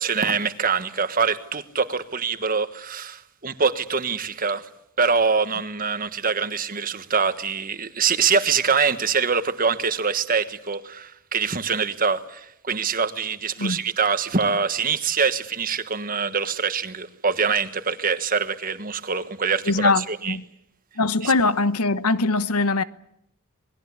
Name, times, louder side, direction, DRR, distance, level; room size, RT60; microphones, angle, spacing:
voice 1, 0.0-4.7 5.0-20.4 21.2-21.3, right 5 dB, 40° right, 1.4 m, -24 dB
voice 2, 19.7-20.4 21.0-22.8, left 3 dB, 85° left, 1.2 m, -22 dB
27.5 x 21.0 x 8.4 m
head